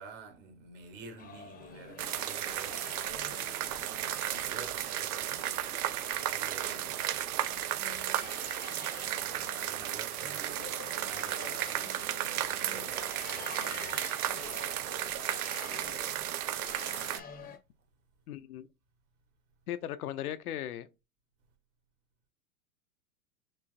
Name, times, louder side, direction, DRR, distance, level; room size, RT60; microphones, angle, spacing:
voice 1, 0.0-8.4 8.6-14.1, right 4 dB, 55° right, 1.6 m, -51 dB
sound 1, 1.2-17.6, left 5 dB, 20° left, 0.7 m, -48 dB
sound 2, 2.0-17.2, right 12 dB, 70° right, 0.6 m, -34 dB
voice 2, 18.3-18.7 19.7-20.9, left 11 dB, 75° left, 0.6 m, -37 dB
4.4 x 3.1 x 2.5 m
hypercardioid pair, 115°, 45 cm